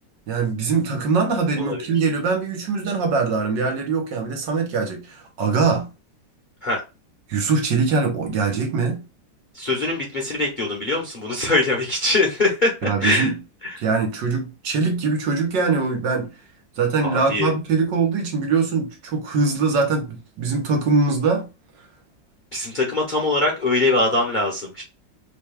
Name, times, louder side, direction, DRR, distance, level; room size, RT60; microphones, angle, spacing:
voice 1, 0.3-5.9 7.3-9.0 12.8-13.3 13.8-16.3 16.8-21.5, right 4 dB, 70° right, 1.7 m, -22 dB
voice 2, 1.6-1.9 6.6-6.8 9.5-13.3 13.6-13.8 17.0-17.5 22.5-24.8, left 2 dB, 35° left, 0.8 m, -22 dB
5.2 x 3.4 x 2.3 m
omnidirectional pair, 2.1 m